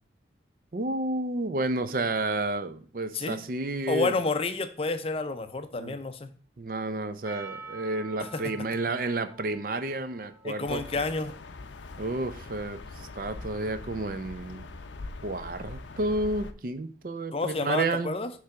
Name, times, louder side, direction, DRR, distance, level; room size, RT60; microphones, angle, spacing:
voice 1, 0.7-4.1 5.7-6.0 6.6-10.8 12.0-14.7 15.2-18.1, right 2 dB, 50° right, 11 dB, 0.5 m, -31 dB
voice 2, 3.9-6.3 8.2-8.4 10.4-11.3 17.3-18.3, left 3 dB, 30° left, 10 dB, 0.5 m, -30 dB
Percussion, 7.2-11.8, right 3 dB, 15° right, 1.5 m, -47 dB
sound 1, 10.6-16.5, left 3 dB, 85° left, 0.6 m, -42 dB
6.5 x 3.4 x 5.7 m, 0.43 s
head